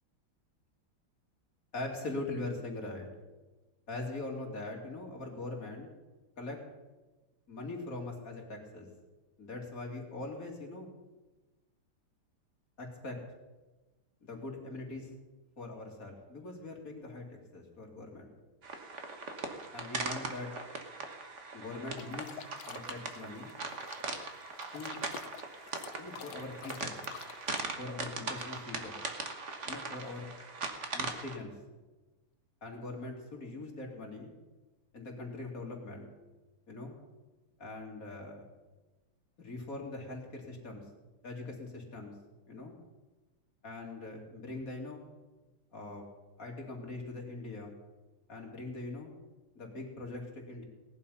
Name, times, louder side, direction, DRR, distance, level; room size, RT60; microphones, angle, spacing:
voice 1, 1.7-3.1 3.9-5.9 6.4-6.6 7.5-8.9 9.4-10.9 12.8-13.2 14.2-15.1 15.6-18.3 19.7-20.6 21.5-23.5 24.7-25.0 26.0-27.0 27.8-28.9 29.6-30.3 30.9-31.5 32.6-34.3 34.9-36.1 36.7-37.0 37.6-38.4 39.4-40.8 41.2-42.1 42.5-42.8 43.6-45.0 45.7-46.1 46.4-47.7 48.3-49.1 49.5-50.6, left 2 dB, 40° left, 0 dB, 3.0 m, -42 dB
sound 1, 18.6-31.4, right 3 dB, 40° right, 1.5 m, -40 dB
sound 2, 22.0-27.6, left 9 dB, 65° left, 1.2 m, -49 dB
18.5 x 11.5 x 5.7 m, 1.2 s
omnidirectional pair, 2.4 m